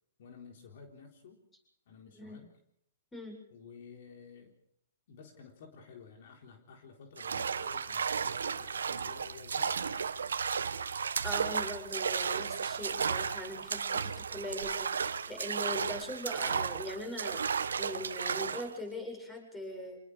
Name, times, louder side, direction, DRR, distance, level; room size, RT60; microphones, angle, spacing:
voice 1, 0.2-1.4 1.9-2.5 3.5-4.6 5.1-10.1, left 5 dB, 60° left, 3 dB, 4.0 m, -53 dB
sound 1, 7.2-18.7, right 6 dB, 85° right, 1.3 m, -34 dB
voice 2, 11.2-17.4 17.8-20.0, equal, 10° left, 4 dB, 7.4 m, -41 dB
27.0 x 20.0 x 5.1 m, 0.70 s
hypercardioid pair, 130°, 0 cm